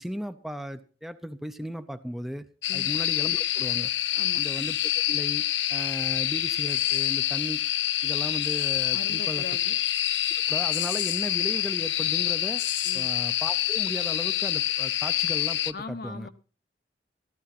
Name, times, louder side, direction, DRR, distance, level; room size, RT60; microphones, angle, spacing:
voice 1, 0.0-2.5 2.7-3.9 4.4-4.8 5.1-5.4 5.7-7.6 8.0-9.4 10.5-12.6 12.9-16.3, equal, ahead, 9 dB, 0.7 m, -36 dB
sound 1, 2.6-15.7, left 13 dB, 85° left, 0.6 m, -27 dB
voice 2, 4.2-4.5 8.9-9.8 12.8-13.1 15.7-16.3, left 2 dB, 55° left, 10 dB, 1.0 m, -40 dB
14.5 x 13.5 x 4.2 m, 0.36 s
head